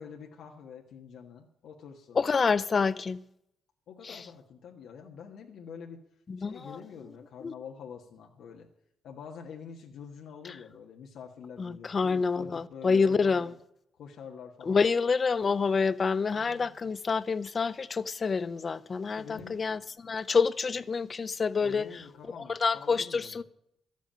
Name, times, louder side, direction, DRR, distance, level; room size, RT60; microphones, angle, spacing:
voice 1, 0.0-2.2 3.9-6.0 6.4-8.7 9.0-13.6 14.0-14.8 16.3-16.9 19.1-19.9 21.6-23.4, left 6 dB, 80° left, 1.6 m, -46 dB
voice 2, 2.2-3.2 4.0-4.3 6.3-6.8 7.4-7.5 10.4-10.5 11.6-13.5 14.7-22.0 22.4-23.4, left 5 dB, 30° left, 0.6 m, -28 dB
13.5 x 8.3 x 8.9 m
cardioid pair, 150°, 0 cm